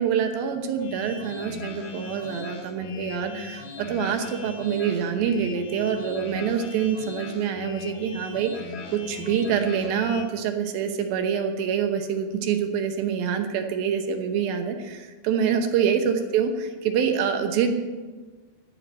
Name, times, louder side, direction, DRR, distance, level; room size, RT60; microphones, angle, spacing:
voice 1, 0.0-8.6 8.9-17.7, right 7 dB, 70° right, 6 dB, 2.4 m, -26 dB
sound 1, 0.8-10.3, left 4 dB, 65° left, 2.3 m, -38 dB
15.0 x 5.8 x 9.4 m, 1.3 s
omnidirectional pair, 5.1 m